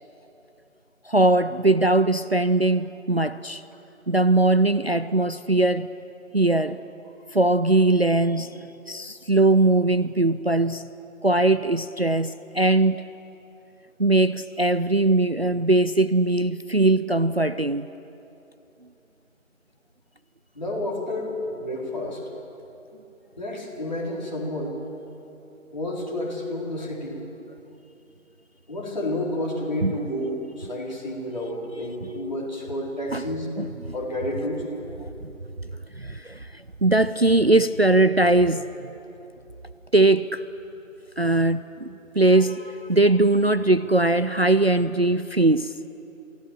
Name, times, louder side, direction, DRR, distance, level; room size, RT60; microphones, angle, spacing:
voice 1, 1.1-3.6 4.1-5.9 6.3-6.8 7.3-8.5 8.9-10.9 11.2-13.1 14.0-17.9 29.8-29.9 33.1-33.2 33.6-33.7 36.0-36.4 36.8-38.7 39.9-40.4 41.2-45.7, right 2 dB, 50° right, 14 dB, 0.5 m, -20 dB
voice 2, 20.5-22.2 23.4-24.8 25.7-27.2 28.7-33.5 33.9-34.6, left 1 dB, 30° left, -4 dB, 4.0 m, -30 dB
28.0 x 16.5 x 7.4 m, 2.9 s
figure-of-eight pair, 170°, 41 cm